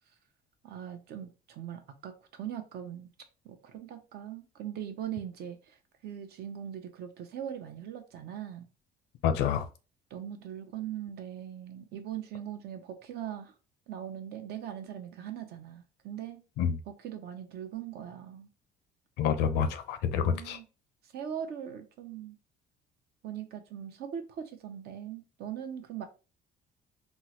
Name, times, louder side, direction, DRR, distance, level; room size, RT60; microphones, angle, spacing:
voice 1, 0.6-3.1 3.4-5.8 6.0-8.7 10.1-13.5 13.9-16.4 16.9-18.5 20.2-20.7 21.0-22.4 23.2-26.1, right 9 dB, 70° right, 0.7 m, -40 dB
voice 2, 9.2-9.7 16.6-16.7 19.2-20.6, left 8 dB, 85° left, 0.6 m, -27 dB
3.6 x 2.1 x 2.8 m
cardioid pair, 110°, 17 cm